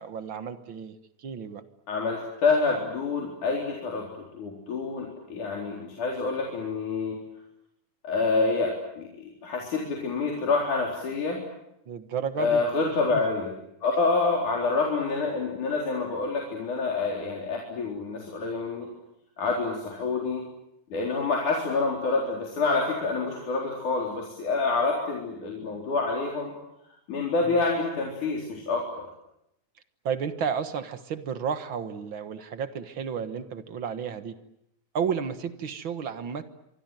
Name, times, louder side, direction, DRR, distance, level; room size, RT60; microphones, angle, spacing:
voice 1, 0.0-1.6 11.8-12.6 13.1-13.2 27.4-27.6 30.0-34.3 34.9-36.5, right 7 dB, 50° right, 10 dB, 1.8 m, -32 dB
voice 2, 1.9-7.2 8.0-11.4 12.4-13.5 13.8-18.9 19.4-20.4 20.9-26.5 27.1-29.1, left 3 dB, 75° left, -1 dB, 5.6 m, -27 dB
25.5 x 24.5 x 9.1 m, 0.81 s
omnidirectional pair, 3.6 m